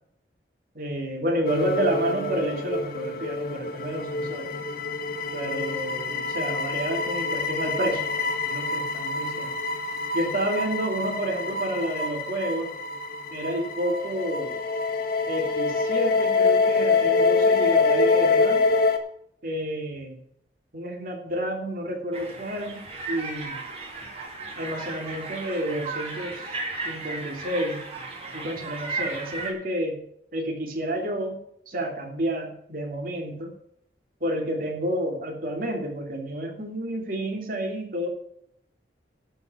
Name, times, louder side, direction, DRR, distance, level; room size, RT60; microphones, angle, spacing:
voice 1, 0.7-4.6 5.3-9.5 10.1-12.7 13.3-14.6 15.3-18.7 19.4-20.2 20.7-23.6 24.6-26.5 26.8-27.8 28.3-30.0 30.3-31.4 31.7-33.5 34.2-38.1, right 1 dB, 55° right, 1 dB, 2.9 m, -30 dB
sound 1, 1.5-19.0, left 4 dB, 60° left, 1.6 m, -26 dB
sound 2, 22.1-29.5, right 3 dB, 35° right, 2.7 m, -35 dB
12.0 x 5.6 x 7.7 m, 0.70 s
head